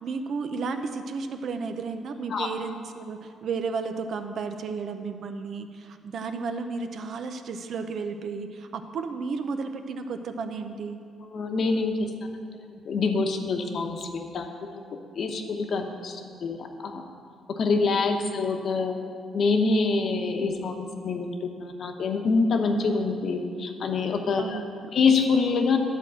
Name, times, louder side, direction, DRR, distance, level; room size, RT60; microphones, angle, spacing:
voice 1, 0.0-11.0 24.4-24.9, right 4 dB, 65° right, 7 dB, 0.7 m, -33 dB
voice 2, 11.2-12.0 12.6-14.8 15.1-17.1 17.6-19.0 19.3-24.6 24.9-25.8, left 4 dB, 60° left, 4 dB, 1.0 m, -26 dB
11.0 x 4.5 x 7.7 m, 2.3 s
cardioid pair, 90°, 0 cm